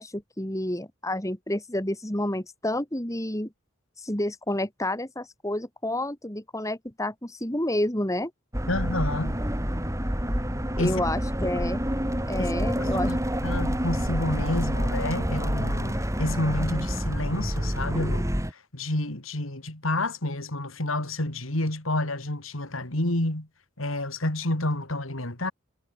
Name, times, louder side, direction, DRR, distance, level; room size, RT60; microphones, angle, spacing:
voice 1, 0.0-3.5 4.0-8.3 10.8-11.8 12.3-13.1, left 1 dB, 15° left, 2.8 m, -29 dB
sound 1, 8.5-18.5, equal, 15° right, 6.0 m, -28 dB
voice 2, 8.7-9.4 10.8-11.0 12.4-13.2 13.4-18.3 18.7-23.5 23.8-25.5, left 1 dB, 85° left, 4.1 m, -29 dB
head